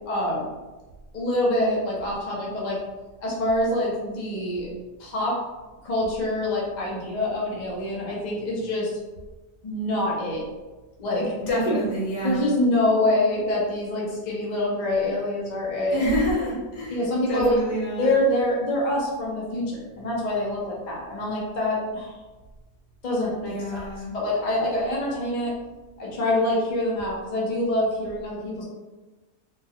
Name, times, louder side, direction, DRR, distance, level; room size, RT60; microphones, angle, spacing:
voice 1, 0.1-0.5 1.1-2.8 3.2-4.7 5.0-5.4 5.8-8.9 9.6-10.4 11.0-11.3 11.7-11.8 12.2-16.0 16.9-17.6 18.0-22.1 23.0-25.5 26.0-28.6, left 1 dB, 45° left, -5 dB, 0.6 m, -25 dB
voice 2, 11.4-12.5 15.9-18.2 23.4-24.1, equal, 75° left, -5 dB, 1.5 m, -27 dB
2.9 x 2.3 x 2.8 m, 1.2 s
omnidirectional pair, 1.7 m